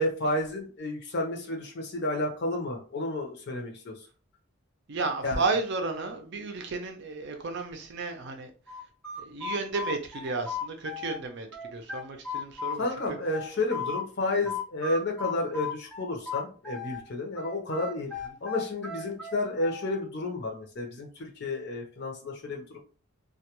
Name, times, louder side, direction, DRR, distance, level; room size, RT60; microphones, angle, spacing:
voice 1, 0.0-3.9 5.2-5.4 12.7-22.8, left 2 dB, 50° left, 0.7 m, -31 dB
voice 2, 4.9-8.5 9.2-13.2, right 3 dB, 50° right, 0.5 m, -33 dB
sound 1, 8.7-11.2 11.5-14.1 14.5-17.0 17.4-20.0, left 5 dB, 5° left, 0.6 m, -36 dB
2.2 x 2.2 x 2.9 m
head